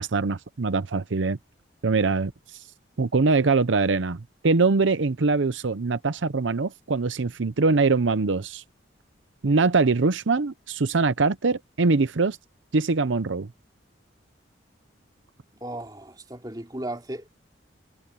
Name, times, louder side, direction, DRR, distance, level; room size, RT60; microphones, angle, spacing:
voice 1, 0.0-1.4 1.8-2.6 3.0-8.6 9.4-12.4 12.7-13.5, right 4 dB, 80° right, 0.7 m, -23 dB
voice 2, 15.6-17.3, right 1 dB, 20° right, 2.9 m, -35 dB
head